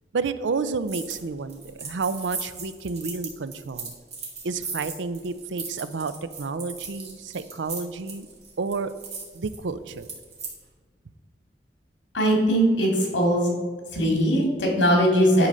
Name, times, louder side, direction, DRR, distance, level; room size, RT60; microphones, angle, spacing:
voice 1, 0.1-3.9 4.4-8.3 8.6-8.9 9.3-10.1, right 4 dB, 80° right, 13 dB, 0.5 m, -30 dB
sound 1, 0.9-1.2 1.5-10.5, right 5 dB, 40° right, 2.0 m, -37 dB
voice 2, 12.1-13.5 13.9-15.5, equal, 85° left, 0 dB, 2.8 m, -20 dB
10.5 x 4.0 x 6.3 m, 1.5 s
head